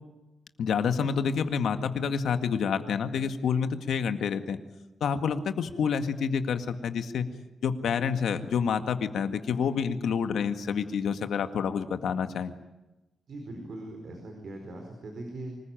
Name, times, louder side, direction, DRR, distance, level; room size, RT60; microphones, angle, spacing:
voice 1, 0.6-4.6 5.0-7.3 7.6-12.5, left 6 dB, 80° left, 8 dB, 1.9 m, -28 dB
voice 2, 13.3-15.6, right 2 dB, 50° right, 3 dB, 4.7 m, -40 dB
25.5 x 20.0 x 9.1 m, 1.0 s
wide cardioid pair, 170°, 0 cm